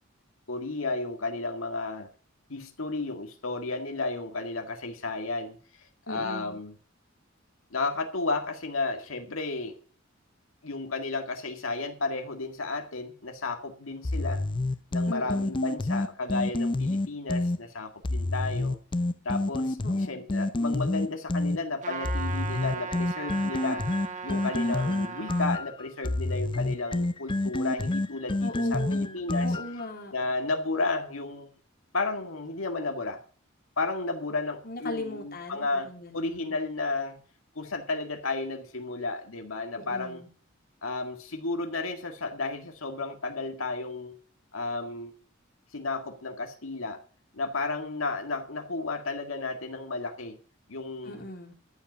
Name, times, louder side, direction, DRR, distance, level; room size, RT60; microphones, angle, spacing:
voice 1, 0.5-2.1 2.5-5.6 6.1-6.8 7.7-9.8 10.6-14.4 14.9-18.8 19.3-19.8 20.1-23.8 24.2-29.5 30.1-31.5 31.9-33.2 33.8-37.2 37.6-40.2 40.8-44.2 44.5-45.1 45.7-47.0 47.3-50.4 50.7-51.1, left 3 dB, 90° left, 1.9 m, -33 dB
voice 2, 6.1-6.6 15.1-15.7 19.8-20.3 28.4-30.1 34.6-36.6 39.8-40.3 51.0-51.5, left 1 dB, 50° left, 3.4 m, -39 dB
sound 1, 14.0-17.6 18.0-21.6 22.0-29.8, left 2 dB, 25° left, 0.5 m, -28 dB
Trumpet, 21.8-25.5, right 5 dB, 40° right, 1.5 m, -37 dB
14.0 x 5.4 x 9.6 m
head